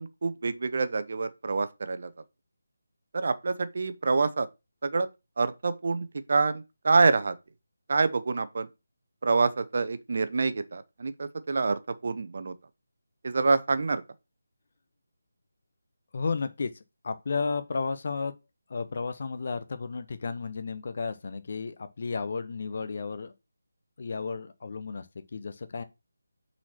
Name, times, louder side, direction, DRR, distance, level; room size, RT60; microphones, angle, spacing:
voice 1, 0.0-2.1 3.1-4.5 4.8-5.1 5.4-7.4 7.9-8.7 9.2-12.5 13.2-14.0, right 4 dB, 50° right, 0.7 m, -26 dB
voice 2, 16.1-18.3 18.7-23.3 24.0-25.8, left 4 dB, 45° left, 0.8 m, -33 dB
6.0 x 4.2 x 5.8 m
figure-of-eight pair, 155°, 0 cm